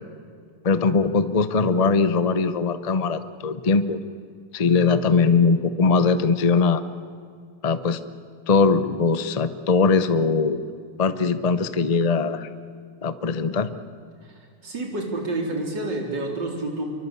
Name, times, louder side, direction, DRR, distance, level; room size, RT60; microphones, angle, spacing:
voice 1, 0.6-4.0 4.5-6.8 7.6-8.0 8.5-10.6 11.0-12.5 13.0-13.7, left 4 dB, 85° left, 11 dB, 0.3 m, -21 dB
voice 2, 14.2-16.9, right 2 dB, 55° right, 1 dB, 4.5 m, -29 dB
26.5 x 24.0 x 8.4 m, 2.2 s
omnidirectional pair, 2.4 m